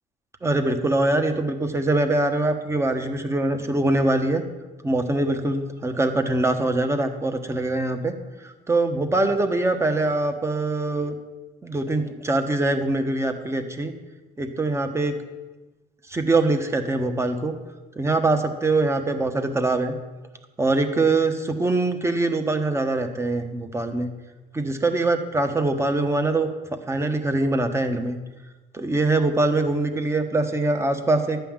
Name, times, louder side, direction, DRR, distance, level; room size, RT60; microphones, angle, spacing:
voice 1, 0.4-4.4 4.8-11.1 11.6-13.9 14.4-15.1 16.1-17.5 18.0-19.9 20.6-24.1 24.5-26.5 26.9-28.2 28.7-31.4, right 2 dB, 15° right, 7 dB, 1.3 m, -23 dB
12.0 x 5.7 x 8.9 m, 1.2 s
cardioid pair, 110°, 17 cm